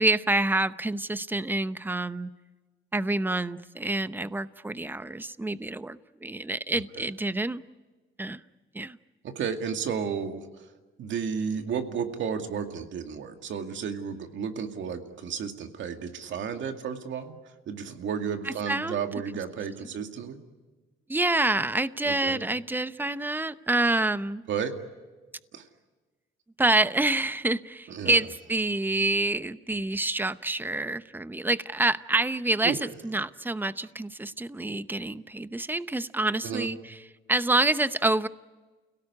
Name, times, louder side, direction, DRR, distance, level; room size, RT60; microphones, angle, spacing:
voice 1, 0.0-2.3 2.9-7.6 8.2-8.4 8.7-9.0 18.4-19.0 21.1-24.4 26.6-37.0 37.3-38.3, right 2 dB, 10° right, 14 dB, 0.8 m, -27 dB
voice 2, 6.7-7.1 9.2-10.5 11.0-17.4 17.7-20.4 22.0-22.4 24.5-24.7 25.5-25.6 27.9-28.2 32.6-32.8 36.4-36.7, right 7 dB, 70° right, 5 dB, 2.3 m, -32 dB
29.5 x 17.5 x 9.7 m, 1.3 s
cardioid pair, 90°, 20 cm